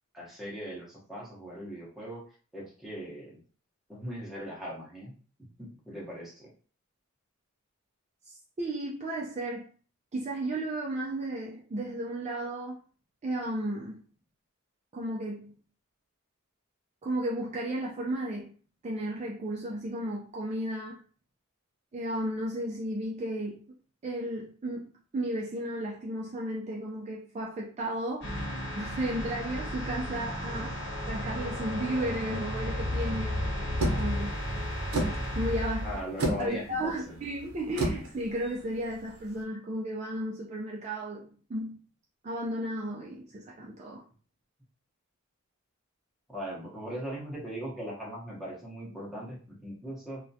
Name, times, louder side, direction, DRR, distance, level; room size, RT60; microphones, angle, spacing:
voice 1, 0.1-2.2 2.5-3.4 3.9-5.1 5.6-6.5 30.5-30.7 35.8-37.2 46.3-50.2, equal, ahead, 0.8 m, -39 dB
voice 2, 8.3-9.7 10.1-12.8 13.2-14.0 14.9-15.6 17.0-18.6 18.8-21.0 21.9-23.7 24.0-28.3 28.8-30.7 31.1-34.4 35.3-35.9 36.4-41.8 42.2-44.0, right 1 dB, 30° right, 0.4 m, -34 dB
sound 1, 28.2-36.0, equal, 55° left, 1.0 m, -33 dB
sound 2, 33.8-39.4, right 1 dB, 90° right, 0.7 m, -34 dB
2.3 x 2.1 x 2.6 m
head